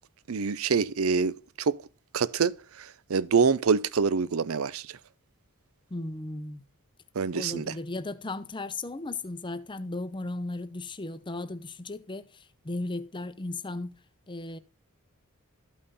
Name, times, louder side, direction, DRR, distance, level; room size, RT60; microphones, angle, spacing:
voice 1, 0.3-1.8 2.1-4.9 7.2-7.7, right 5 dB, 70° right, 0.5 m, -26 dB
voice 2, 5.9-6.6 7.3-14.0 14.3-14.6, left 2 dB, 20° left, 0.6 m, -36 dB
13.0 x 5.5 x 4.1 m
head